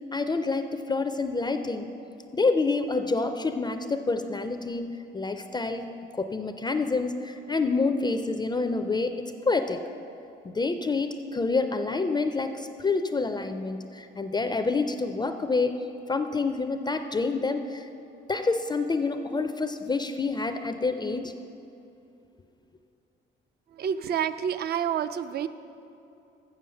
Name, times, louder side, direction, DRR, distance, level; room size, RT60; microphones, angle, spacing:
voice 1, 0.1-1.9 2.3-9.8 10.4-15.8 16.1-17.9 18.3-21.3, left 3 dB, 20° left, 8 dB, 0.4 m, -28 dB
voice 2, 23.7-25.5, right 8 dB, 55° right, 13 dB, 0.4 m, -28 dB
7.1 x 7.0 x 6.5 m, 2.7 s
cardioid pair, 90°, 20 cm